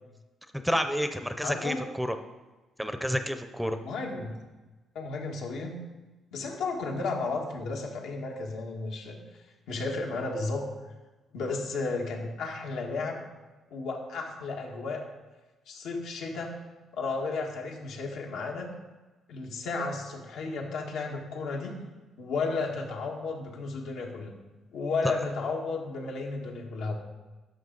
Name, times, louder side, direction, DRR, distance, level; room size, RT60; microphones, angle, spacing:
voice 1, 0.6-2.1 2.8-3.8, equal, ahead, 8 dB, 0.6 m, -29 dB
voice 2, 1.4-1.8 3.8-4.4 4.9-5.8 6.3-9.2 9.7-10.6 11.3-13.2 13.7-15.0 15.7-16.6 16.9-18.7 19.3-21.8 22.2-24.3 24.7-26.9, left 3 dB, 85° left, 0 dB, 1.6 m, -33 dB
11.0 x 6.2 x 4.0 m, 1.2 s
cardioid pair, 90°, 0 cm